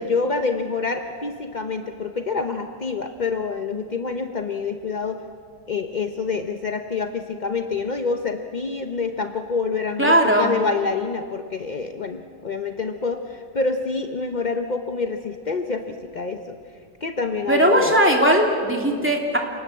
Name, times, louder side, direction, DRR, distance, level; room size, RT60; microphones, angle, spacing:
voice 1, 0.0-5.2 5.7-16.6 17.0-18.0, left 4 dB, 55° left, 5 dB, 0.5 m, -27 dB
voice 2, 10.0-10.5 17.5-19.4, right 1 dB, 5° right, 0 dB, 2.8 m, -18 dB
29.0 x 19.5 x 7.5 m, 2.1 s
omnidirectional pair, 2.2 m